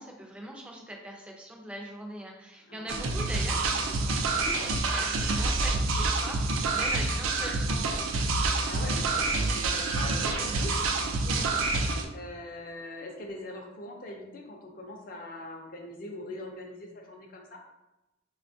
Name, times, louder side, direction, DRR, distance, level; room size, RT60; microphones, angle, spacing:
voice 1, 0.0-8.0, right 1 dB, 5° right, 0 dB, 0.4 m, -42 dB
voice 2, 2.7-3.1 8.6-11.5 12.1-17.6, left 1 dB, 45° left, 1 dB, 0.5 m, -42 dB
sound 1, 2.9-12.1, right 3 dB, 85° right, 0.4 m, -27 dB
5.0 x 2.2 x 2.6 m, 0.97 s
head